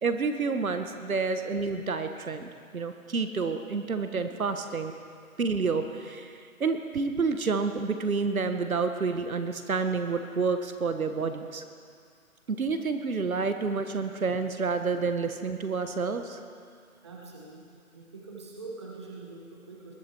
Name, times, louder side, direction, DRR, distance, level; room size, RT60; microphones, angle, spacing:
voice 1, 0.0-4.9 5.4-11.6 12.5-16.4, right 4 dB, 75° right, 8 dB, 1.3 m, -29 dB
voice 2, 17.0-19.9, right 3 dB, 20° right, -2 dB, 1.1 m, -44 dB
20.0 x 11.0 x 4.5 m, 2.2 s
hypercardioid pair, 170°, 42 cm